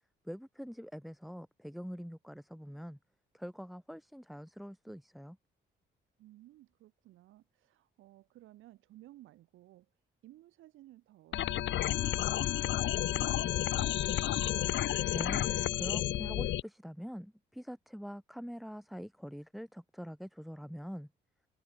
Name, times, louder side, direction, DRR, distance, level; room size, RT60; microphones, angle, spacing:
voice 1, 0.2-3.0 3.3-5.4 15.1-21.1, equal, ahead, 3.1 m, -44 dB
voice 2, 6.2-14.8, right 15 dB, 90° right, 7.3 m, -58 dB
sound 1, 11.3-16.6, left 13 dB, 70° left, 0.7 m, -31 dB
cardioid pair, 90°, 20 cm